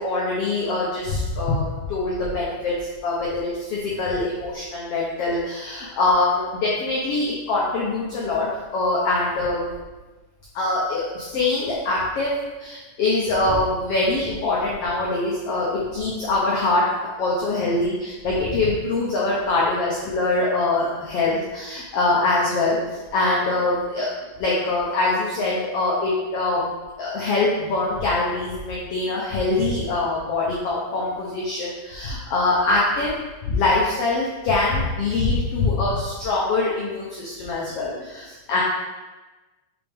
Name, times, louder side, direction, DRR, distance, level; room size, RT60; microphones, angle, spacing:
voice 1, 0.0-2.7 3.0-8.5 8.7-9.8 10.5-12.3 12.6-16.9 17.2-22.8 23.1-24.1 24.4-26.7 27.0-38.6, left 2 dB, 90° left, -5 dB, 1.3 m, -23 dB
5.9 x 5.1 x 3.5 m, 1.2 s
omnidirectional pair, 4.0 m